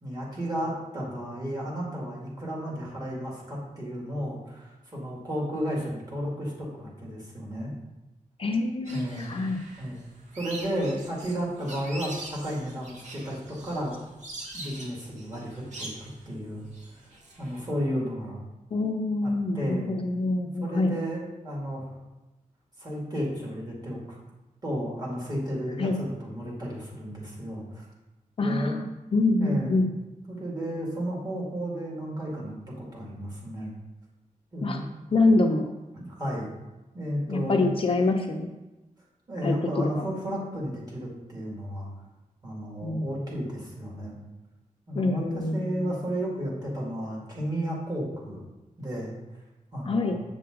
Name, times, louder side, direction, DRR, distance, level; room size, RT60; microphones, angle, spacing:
voice 1, 0.0-7.7 8.9-9.3 9.8-10.1 10.3-14.0 14.5-16.6 16.9-17.1 17.4-18.4 19.2-19.9 20.4-22.0 22.8-24.0 24.6-27.9 28.4-28.8 29.4-29.8 30.3-33.7 34.5-34.9 35.9-36.5 36.9-37.7 39.3-41.9 42.4-44.2 44.9-48.5 48.8-49.1 49.7-50.2, equal, 30° right, -4 dB, 2.3 m, -33 dB
voice 2, 8.4-9.6 18.7-20.9 25.8-26.0 28.4-28.8 29.1-29.9 34.6-34.8 35.1-35.7 37.3-38.5 39.4-40.0 42.8-43.2 44.9-46.0 49.9-50.2, left 2 dB, 40° left, 3 dB, 0.6 m, -25 dB
sound 1, 8.9-17.6, right 1 dB, 60° right, 1.7 m, -43 dB
7.7 x 6.8 x 3.8 m, 1.1 s
wide cardioid pair, 175°, 14 cm